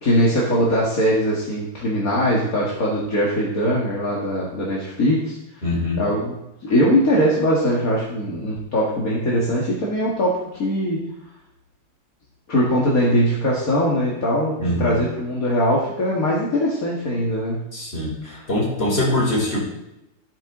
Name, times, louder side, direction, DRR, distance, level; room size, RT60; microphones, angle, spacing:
voice 1, 0.0-5.4 6.0-11.0 12.5-17.6 18.3-18.4, equal, 65° left, -5 dB, 2.5 m, -21 dB
voice 2, 5.6-6.0 14.6-15.0 17.7-18.1 18.5-19.6, left 1 dB, 40° left, -3 dB, 4.3 m, -22 dB
14.5 x 9.0 x 3.9 m, 0.87 s
omnidirectional pair, 1.6 m